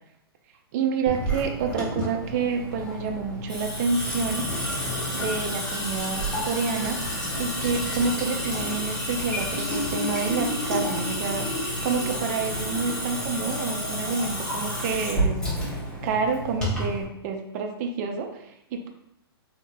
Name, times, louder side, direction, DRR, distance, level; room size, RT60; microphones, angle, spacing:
voice 1, 0.7-4.5 5.1-7.0 7.4-15.4 15.7-18.9, right 5 dB, 40° right, 4 dB, 0.5 m, -28 dB
Water tap faucet / Sink (filling or washing) / Drip, 1.1-17.0, equal, 5° left, 1.2 m, -30 dB
3.9 x 2.9 x 2.6 m, 0.79 s
hypercardioid pair, 140°, 13 cm